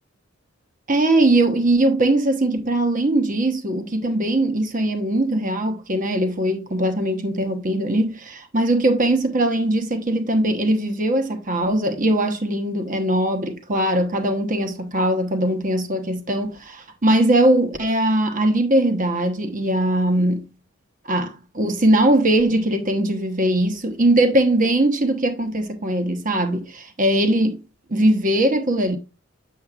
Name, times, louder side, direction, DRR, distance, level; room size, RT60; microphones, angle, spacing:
voice 1, 0.9-20.5 21.1-27.6 27.9-29.0, right 1 dB, 40° right, 1.1 m, -20 dB
8.4 x 7.1 x 2.4 m
head